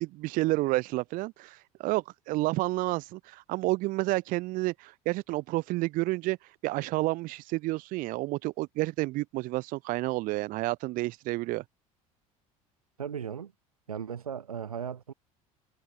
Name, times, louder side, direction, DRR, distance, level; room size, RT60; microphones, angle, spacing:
voice 1, 0.2-6.4 6.6-11.6, right 20 dB, 50° right, 0.5 m, -30 dB
voice 2, 13.0-13.5 13.9-15.1, right 8 dB, 85° right, 1.2 m, -36 dB
figure-of-eight pair, 70°, 18 cm